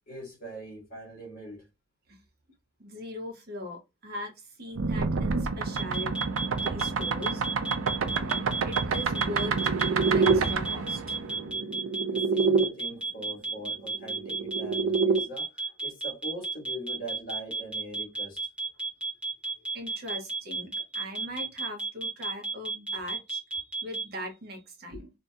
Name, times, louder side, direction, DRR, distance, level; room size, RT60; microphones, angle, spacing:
voice 1, 0.1-1.7 12.1-18.4, right 1 dB, 40° left, 1.3 m, -42 dB
voice 2, 2.8-6.1 6.6-7.4 7.9-9.5 10.0-11.2 19.7-25.1, left 1 dB, 45° right, 0.8 m, -40 dB
sound 1, 4.8-12.7 13.9-15.2, right 4 dB, 65° right, 0.4 m, -27 dB
sound 2, 5.7-24.0, right 4 dB, 5° right, 0.7 m, -32 dB
2.7 x 2.7 x 2.2 m
head